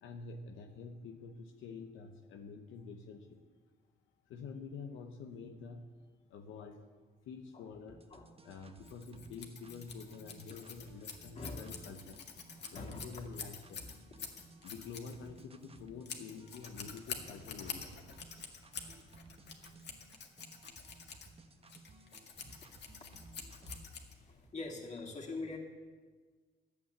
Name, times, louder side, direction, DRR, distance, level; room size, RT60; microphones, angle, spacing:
voice 1, 0.0-3.4 4.3-5.8 6.3-6.8 7.3-8.0 8.4-12.2 12.7-13.8 14.6-17.9 18.3-18.4 23.6-23.8, left 5 dB, 85° left, 3 dB, 1.0 m, -48 dB
sound 1, 7.9-23.9, right 3 dB, 30° right, 1.1 m, -59 dB
Scissors, 8.8-24.5, left 6 dB, 60° left, 1.9 m, -48 dB
voice 2, 12.6-13.1 22.8-23.0 23.6-23.7 24.3-25.6, left 3 dB, 35° left, -2 dB, 2.9 m, -44 dB
12.0 x 8.6 x 8.1 m, 1.4 s
cardioid pair, 90°, 20 cm